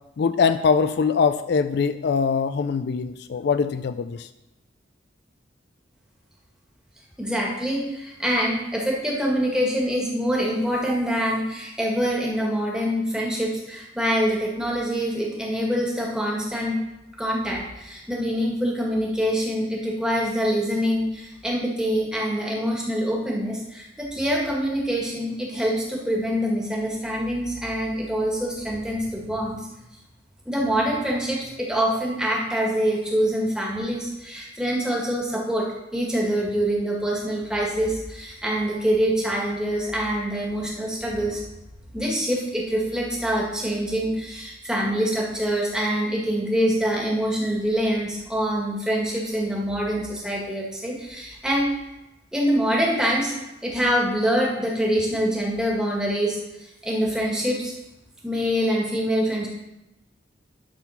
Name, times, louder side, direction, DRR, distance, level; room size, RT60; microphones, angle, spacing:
voice 1, 0.2-4.3, left 5 dB, 60° left, 11 dB, 0.3 m, -22 dB
voice 2, 7.2-16.8 17.2-29.6 30.4-35.7 35.9-41.4 41.9-51.7 52.3-53.4 53.6-57.7 58.2-59.5, equal, 5° right, -3 dB, 1.6 m, -25 dB
11.5 x 3.9 x 5.6 m, 0.95 s
head